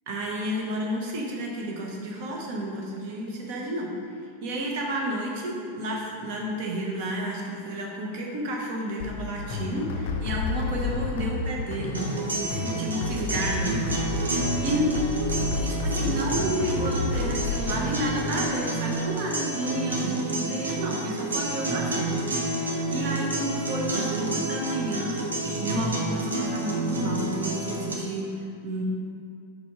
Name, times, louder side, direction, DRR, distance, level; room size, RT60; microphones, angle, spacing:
voice 1, 0.1-3.9 4.4-12.0 12.4-13.7 14.6-14.9 15.3-22.1 22.5-25.2 25.6-28.8, equal, 45° right, -1 dB, 1.0 m, -31 dB
sound 1, 9.0-17.7, left 4 dB, 50° left, 0.5 m, -30 dB
sound 2, 11.9-27.9, right 2 dB, 75° right, 0.8 m, -29 dB
4.8 x 4.0 x 4.8 m, 2.4 s
figure-of-eight pair, 90°, 0 cm